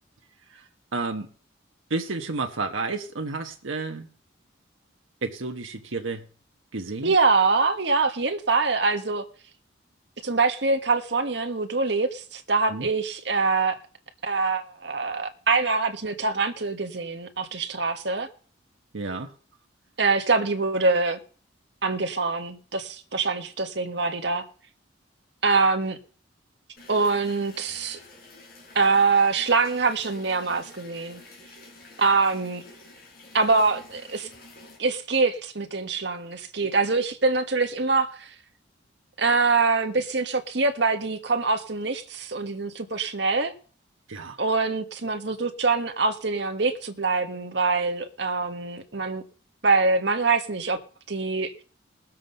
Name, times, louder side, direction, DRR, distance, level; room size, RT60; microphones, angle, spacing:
voice 1, 0.9-1.3 1.9-4.1 5.2-6.2 6.7-7.1 12.7-12.9 18.9-19.3 44.1-44.4, right 3 dB, 90° right, 1.1 m, -31 dB
voice 2, 7.0-9.2 10.2-13.8 14.2-18.3 20.0-21.2 21.8-24.4 25.4-26.0 26.9-28.0 28.7-31.2 32.0-32.6 33.3-34.3 34.8-38.3 39.2-43.5 44.4-49.2 49.6-50.8 51.1-51.6, right 4 dB, 60° right, 1.5 m, -24 dB
sound 1, 26.8-34.8, left 2 dB, 50° left, 4.2 m, -49 dB
19.0 x 7.5 x 5.3 m
head